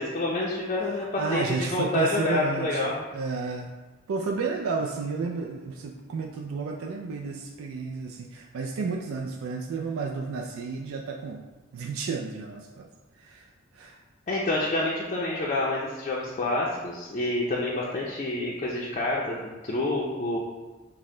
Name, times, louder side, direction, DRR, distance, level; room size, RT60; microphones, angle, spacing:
voice 1, 0.0-3.0 14.3-19.4 19.6-20.4, left 2 dB, 35° left, -5 dB, 0.4 m, -28 dB
voice 2, 0.8-3.7 4.1-11.4 11.7-12.9 13.2-13.5 13.7-14.0, right 4 dB, 80° right, 1 dB, 0.4 m, -32 dB
6.2 x 2.1 x 3.7 m, 1.2 s
head